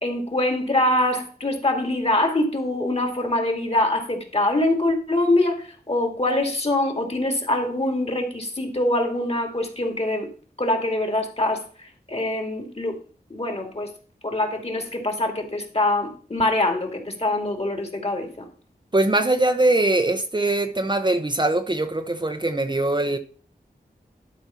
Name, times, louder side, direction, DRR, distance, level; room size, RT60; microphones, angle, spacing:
voice 1, 0.0-10.3 10.6-11.6 12.1-13.0 13.3-13.9 14.2-18.5, left 1 dB, 40° left, 2.4 m, -24 dB
voice 2, 18.9-23.2, right 2 dB, 30° right, 0.9 m, -22 dB
11.5 x 4.4 x 5.8 m
wide cardioid pair, 80°, 17 cm